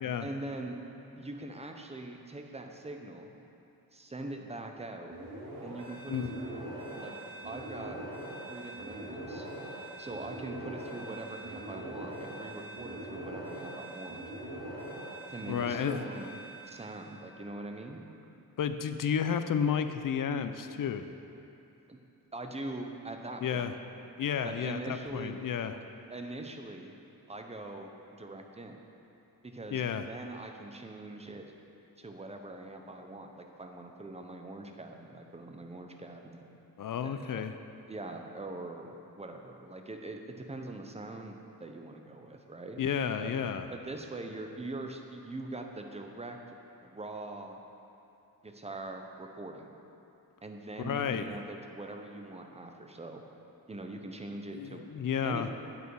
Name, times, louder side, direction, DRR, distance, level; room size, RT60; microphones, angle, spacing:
voice 1, 0.2-0.8 1.2-3.4 3.9-5.1 5.6-6.7 6.9-7.1 7.4-8.0 8.5-9.5 10.0-14.2 15.3-16.3 16.7-18.0 21.9-22.0 22.3-23.7 24.4-25.3 26.1-26.9 27.3-28.7 29.4-31.5 32.0-36.4 37.0-37.5 37.9-42.8 43.2-43.3 43.7-46.4 46.8-47.6 48.4-49.7 50.4-53.2 53.7-54.9 55.2-55.5, right 2 dB, 15° right, 3 dB, 0.7 m, -42 dB
sound 1, 5.1-17.2, right 1 dB, 65° right, 2.3 m, -42 dB
voice 2, 15.5-16.1 18.6-21.1 23.4-23.8 24.2-25.8 29.7-30.1 36.8-37.5 42.8-43.7 50.8-51.4 54.5-55.5, left 7 dB, 60° left, 9 dB, 0.5 m, -32 dB
8.7 x 8.2 x 4.7 m, 2.9 s
wide cardioid pair, 135°, 37 cm